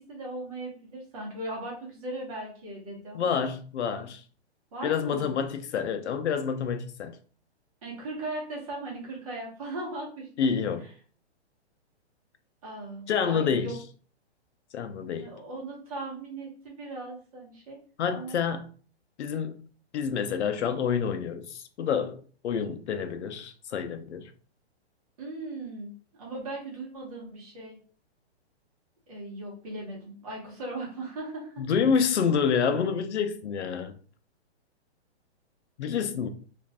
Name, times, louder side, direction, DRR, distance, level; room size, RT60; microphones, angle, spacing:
voice 1, 0.0-3.3 4.7-5.3 7.8-10.3 10.8-10.9 12.6-13.7 15.2-17.8 18.1-18.4 25.2-25.9 26.2-27.8 29.1-31.6 32.3-32.5, right 2 dB, 35° right, 1.1 m, -38 dB
voice 2, 3.1-4.2 4.8-7.2 10.4-10.9 13.1-13.7 14.7-15.3 18.0-18.7 19.2-19.5 19.9-24.3 31.6-33.9 35.8-36.3, left 6 dB, 80° left, 0.6 m, -28 dB
2.6 x 2.4 x 3.4 m
hypercardioid pair, 170°, 34 cm